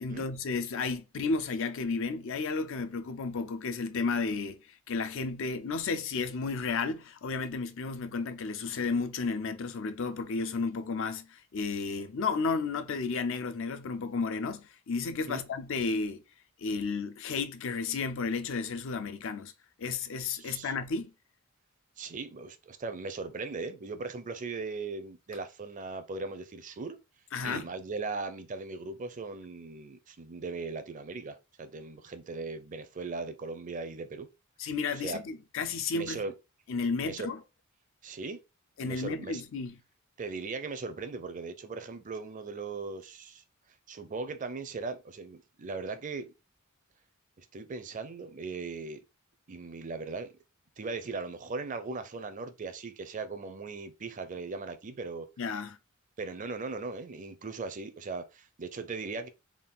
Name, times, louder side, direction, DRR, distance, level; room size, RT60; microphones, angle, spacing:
voice 1, 0.0-16.2 16.6-19.5 19.8-21.1 27.3-27.7 34.6-36.2 36.7-37.4 38.8-39.8 55.4-55.8, left 4 dB, 60° left, 0.5 m, -32 dB
voice 2, 20.4-20.7 22.0-27.0 27.4-34.3 35.0-35.2 35.9-36.3 37.0-37.3 38.0-38.4 38.8-39.4 40.2-43.4 43.9-46.3 47.4-49.0 49.5-50.3 50.8-55.3 56.2-59.3, right 4 dB, 35° right, 0.5 m, -38 dB
3.6 x 2.4 x 3.9 m
head